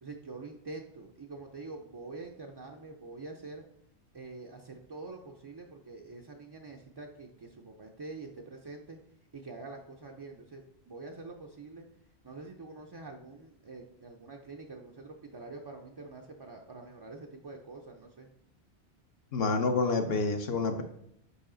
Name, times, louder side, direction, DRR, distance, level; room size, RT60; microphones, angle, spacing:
voice 1, 0.0-3.6 4.1-9.0 9.3-11.9 12.2-18.3, right 3 dB, 40° right, 1 dB, 0.3 m, -46 dB
voice 2, 19.3-20.8, left 3 dB, 70° left, 5 dB, 0.9 m, -28 dB
6.9 x 4.8 x 3.8 m, 0.73 s
omnidirectional pair, 1.1 m